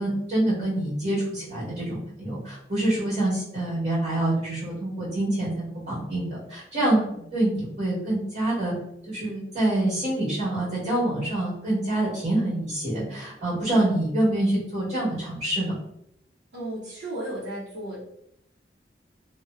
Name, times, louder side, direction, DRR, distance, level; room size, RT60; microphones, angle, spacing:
voice 1, 0.0-8.7 9.1-15.7, right 1 dB, 45° right, -12 dB, 1.3 m, -26 dB
voice 2, 16.5-18.0, right 1 dB, 80° right, -9 dB, 0.7 m, -34 dB
2.7 x 2.1 x 2.4 m, 0.77 s
head